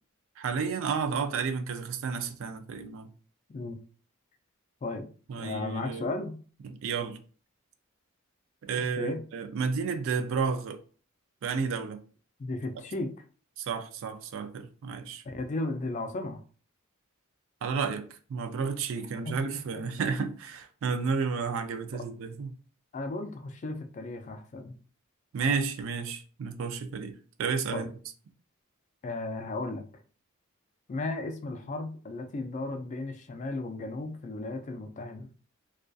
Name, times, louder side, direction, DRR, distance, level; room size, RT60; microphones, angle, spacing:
voice 1, 0.4-3.1 5.3-6.1 6.6-7.2 8.6-10.8 11.4-12.0 13.6-15.2 17.6-22.6 25.3-27.9, right 5 dB, 65° right, 0.3 m, -32 dB
voice 2, 5.3-6.4 9.0-9.2 12.4-13.1 15.2-16.4 19.2-19.8 22.9-24.8 27.7-27.9 29.0-29.8 30.9-35.3, left 2 dB, 35° left, 0.3 m, -35 dB
2.5 x 2.3 x 2.3 m
head